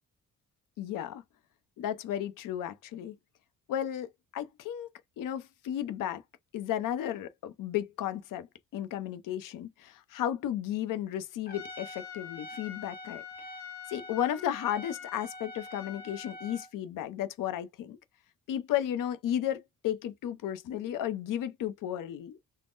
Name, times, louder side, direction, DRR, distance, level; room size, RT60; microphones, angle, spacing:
voice 1, 0.8-1.2 1.8-3.2 3.7-4.9 5.2-6.2 6.5-8.5 8.7-13.2 13.9-18.0 18.5-22.4, left 11 dB, 75° left, 0.6 m, -34 dB
Trumpet, 11.5-16.7, left 4 dB, 30° left, 1.3 m, -44 dB
3.5 x 2.1 x 2.4 m
cardioid pair, 135°, 33 cm